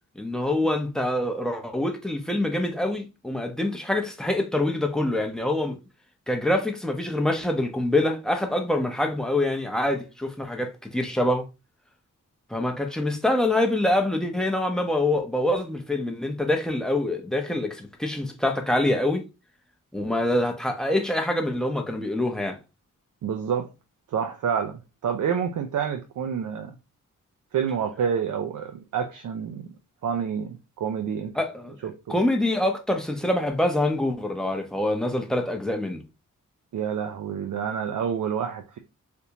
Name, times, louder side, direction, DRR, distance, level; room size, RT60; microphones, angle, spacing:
voice 1, 0.2-5.8 6.3-11.4 12.5-19.2 19.9-22.6 31.4-31.8 32.1-36.0, left 1 dB, ahead, 0.6 m, -25 dB
voice 2, 23.2-23.7 24.1-26.8 27.5-29.7 30.0-31.3 31.8-32.2 36.7-38.8, right 7 dB, 70° right, 0.5 m, -28 dB
3.5 x 2.6 x 2.8 m
wide cardioid pair, 110°, 32 cm